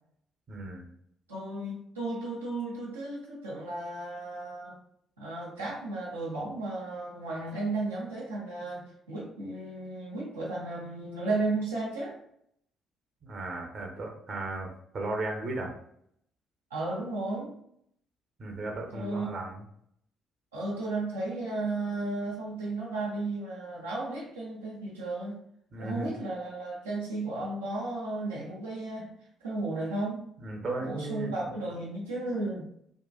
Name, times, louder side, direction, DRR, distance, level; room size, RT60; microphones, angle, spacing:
voice 1, 0.5-0.9 13.2-15.7 18.4-19.6 25.7-26.1 29.0-29.1 30.4-31.3, right 2 dB, 45° right, 1 dB, 0.8 m, -35 dB
voice 2, 1.3-4.8 5.2-12.2 16.7-17.5 18.9-19.3 20.5-25.4 25.8-29.1 29.4-30.3 30.8-32.7, right 2 dB, 85° right, -6 dB, 0.8 m, -34 dB
3.7 x 2.4 x 2.3 m, 0.71 s
figure-of-eight pair, 45°, 0 cm